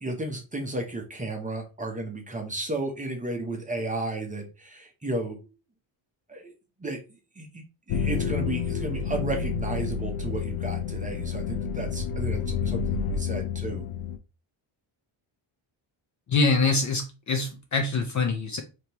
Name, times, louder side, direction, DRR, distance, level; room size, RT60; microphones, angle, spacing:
voice 1, 0.0-5.5 6.3-6.5 6.8-7.0 7.4-13.9, right 2 dB, 15° right, 2 dB, 0.8 m, -33 dB
sound 1, 7.9-14.2, left 6 dB, 85° left, 0.7 m, -29 dB
voice 2, 16.3-18.6, left 3 dB, 35° left, 5 dB, 0.6 m, -24 dB
5.1 x 3.0 x 2.9 m, 0.30 s
cardioid pair, 165°, 50 cm